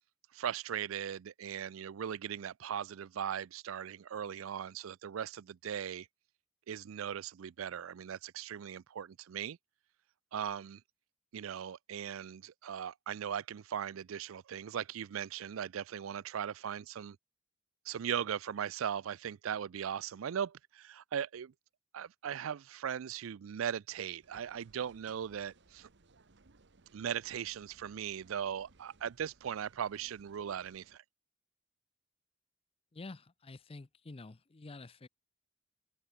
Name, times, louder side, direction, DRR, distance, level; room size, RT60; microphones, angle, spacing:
voice 1, 0.3-6.1 6.7-9.6 10.3-10.8 11.3-17.2 17.9-21.5 21.9-25.9 26.9-31.0, right 8 dB, 80° right, 0.4 m, -39 dB
sound 1, 24.2-31.0, right 3 dB, 60° right, 1.2 m, -64 dB
voice 2, 32.9-35.1, left 3 dB, 30° left, 0.6 m, -49 dB
open air
head